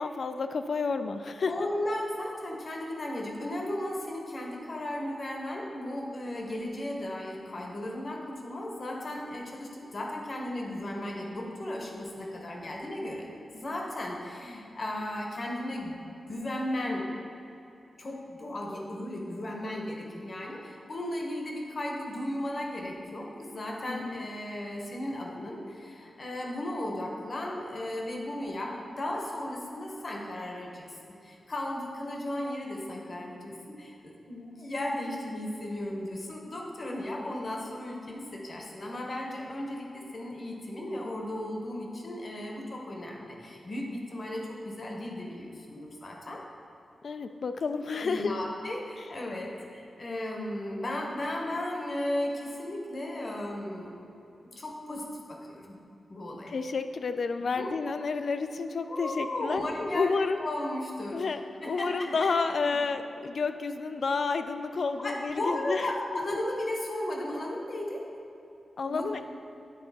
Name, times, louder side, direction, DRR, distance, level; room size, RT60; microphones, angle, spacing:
voice 1, 0.0-1.5 23.9-24.2 47.0-48.4 56.5-59.6 59.9-60.4 61.1-65.9 68.8-69.2, left 4 dB, 55° left, 9 dB, 0.3 m, -30 dB
voice 2, 1.5-13.3 13.5-16.0 16.3-17.1 18.0-30.9 31.2-46.4 48.0-54.1 54.6-55.0 55.3-55.8 56.1-56.5 57.4-57.9 58.9-61.2 61.6-62.3 62.6-62.8 65.0-68.0 68.9-69.1, left 1 dB, 40° left, 0 dB, 0.9 m, -35 dB
9.3 x 3.8 x 4.1 m, 2.9 s
wide cardioid pair, 150°, 0 cm